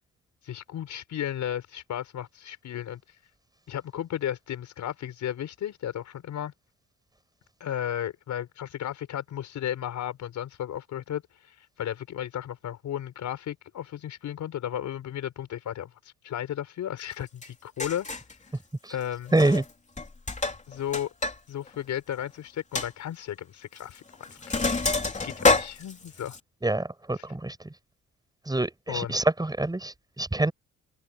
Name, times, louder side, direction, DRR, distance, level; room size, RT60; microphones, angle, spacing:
voice 1, 0.4-3.0 3.7-6.5 7.6-15.9 16.2-18.1 18.9-19.3 20.7-21.1 21.5-24.0 24.3-26.4 28.9-29.2, left 10 dB, 70° left, 4.9 m, -34 dB
Sink (filling or washing), 17.4-17.5 17.8-18.3 19.3-19.7 20.0-21.4 21.7-21.8 22.2-22.3 22.8-22.9 23.8-24.0 24.2-26.4, left 3 dB, 25° left, 3.1 m, -27 dB
voice 2, 19.3-19.6 26.6-27.7 28.5-30.5, right 2 dB, 15° right, 6.7 m, -26 dB
cardioid pair, 90°, 30 cm